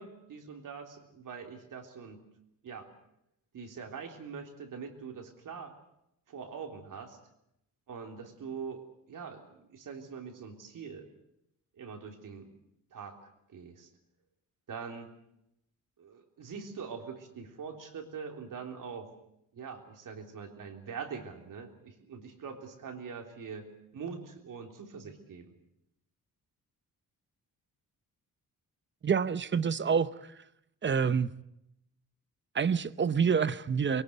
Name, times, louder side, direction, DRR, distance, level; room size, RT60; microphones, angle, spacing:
voice 1, 0.0-2.2 2.6-2.9 3.5-5.7 6.3-7.2 7.9-11.1 11.7-12.6 12.9-13.9 14.7-15.1 16.0-19.1 19.5-25.5, right 6 dB, 65° right, 3 dB, 3.5 m, -43 dB
voice 2, 29.0-30.1 30.8-31.3 32.5-34.0, right 6 dB, 35° right, 15 dB, 0.8 m, -27 dB
22.5 x 18.0 x 8.2 m, 0.81 s
cardioid pair, 115°, 34 cm